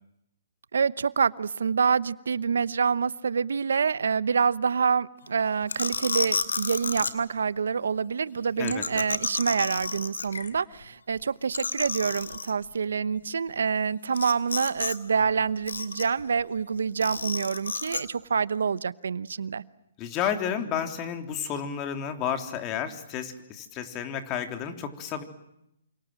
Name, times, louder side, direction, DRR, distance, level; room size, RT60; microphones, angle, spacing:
voice 1, 0.7-19.6, right 6 dB, 80° right, 18 dB, 1.0 m, -27 dB
sound 1, 5.7-7.1 8.7-10.5 10.8-10.9 11.2-11.3 11.5-12.5 14.1-15.0 15.2-16.2 17.0-18.0, left 5 dB, 85° left, 2.6 m, -31 dB
voice 2, 20.0-25.2, left 8 dB, 30° left, 6 dB, 3.5 m, -31 dB
28.5 x 26.5 x 7.6 m, 0.81 s
hypercardioid pair, 140°, 0 cm